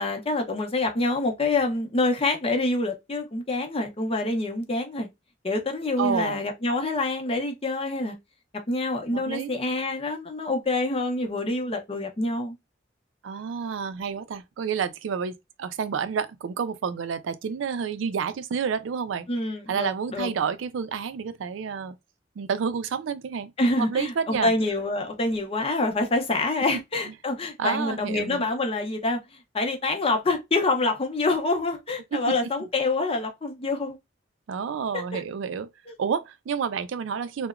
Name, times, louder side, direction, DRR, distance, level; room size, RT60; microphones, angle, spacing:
voice 1, 0.0-5.1 5.4-8.2 8.7-12.6 19.3-20.3 23.6-29.2 29.5-34.0 34.9-35.2 35.9-36.0, left 2 dB, 30° left, 0.6 m, -26 dB
voice 2, 6.0-6.4 9.1-9.5 13.2-19.3 19.7-21.9 22.4-23.5 23.8-24.5 27.6-28.5 32.1-32.3 34.5-35.7 36.0-37.5, right 6 dB, 90° right, 0.4 m, -29 dB
2.9 x 2.1 x 2.3 m
head